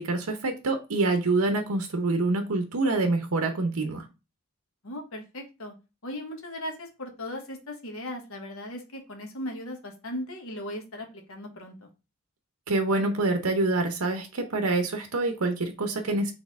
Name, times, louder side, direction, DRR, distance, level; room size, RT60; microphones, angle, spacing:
voice 1, 0.0-4.1 12.7-16.3, right 2 dB, 70° right, 5 dB, 0.7 m, -26 dB
voice 2, 4.8-5.7 6.0-11.9, left 1 dB, 65° left, 3 dB, 1.2 m, -38 dB
4.3 x 3.4 x 3.5 m, 0.28 s
head